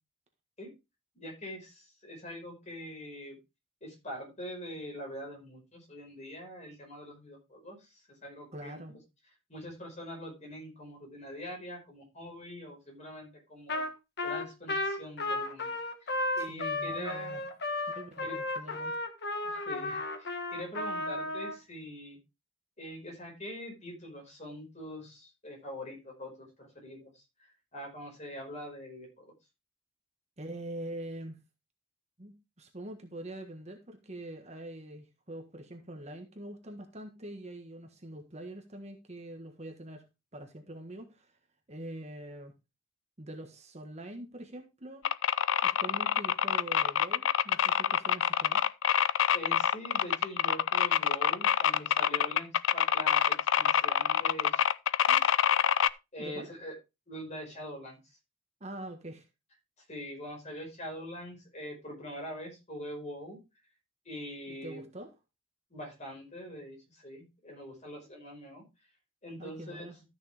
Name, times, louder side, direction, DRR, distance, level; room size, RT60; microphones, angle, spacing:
voice 1, 1.1-3.4 3.8-9.0 9.5-13.8 14.2-15.8 16.4-17.4 18.2-18.4 19.4-22.2 22.8-27.2 27.7-29.3 49.3-54.6 55.1-55.3 56.1-56.7 57.1-58.0 59.9-63.4 64.0-64.8 65.7-68.6 69.2-70.0, equal, 35° left, 1 dB, 5.1 m, -43 dB
voice 2, 8.5-9.0 16.4-17.4 18.0-19.0 30.4-31.4 32.2-40.0 40.3-41.3 41.7-42.5 43.2-45.1 45.6-48.6 56.2-56.5 58.6-59.2 64.5-65.1 69.4-70.0, right 1 dB, 35° right, 5 dB, 1.5 m, -44 dB
Trumpet, 13.7-13.9 14.2-21.6, left 2 dB, 55° left, 1.6 m, -34 dB
sound 1, 45.1-55.9, left 9 dB, 70° left, 0.4 m, -26 dB
13.5 x 6.3 x 3.5 m, 0.25 s
head